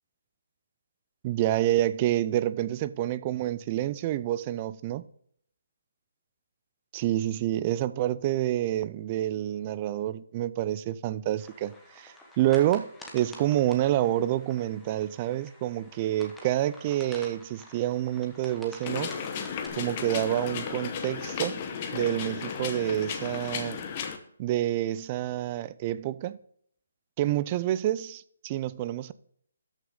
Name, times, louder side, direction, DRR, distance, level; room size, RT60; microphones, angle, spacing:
voice 1, 1.2-5.0 6.9-12.9 13.1-19.1 19.8-21.6 21.9-23.8 24.4-26.4 27.2-29.1, right 13 dB, 25° right, 0.3 m, -28 dB
sound 1, 11.4-19.7, left 1 dB, 5° left, 1.1 m, -49 dB
sound 2, 18.8-24.2, left 6 dB, 25° left, 0.9 m, -34 dB
13.0 x 6.2 x 3.8 m
hypercardioid pair, 170°, 0 cm